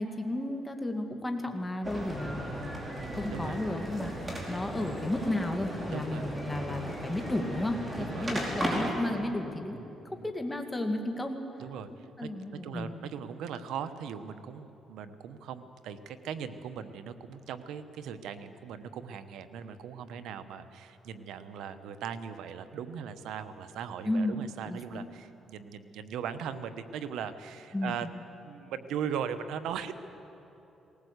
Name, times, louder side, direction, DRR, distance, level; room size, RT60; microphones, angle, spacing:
voice 1, 0.0-9.8 10.2-11.4 12.2-12.9 24.0-24.3 24.7-25.1 27.7-28.1, left 1 dB, 15° left, 4 dB, 2.2 m, -33 dB
sound 1, 1.8-8.9, equal, 20° right, 4.9 m, -36 dB
voice 2, 2.9-3.6 4.7-4.9 5.9-6.3 8.0-8.3 9.7-10.3 11.6-28.1 28.4-29.9, right 8 dB, 85° right, 11 dB, 1.0 m, -39 dB
19.5 x 19.0 x 8.2 m, 3.0 s
cardioid pair, 90°, 0 cm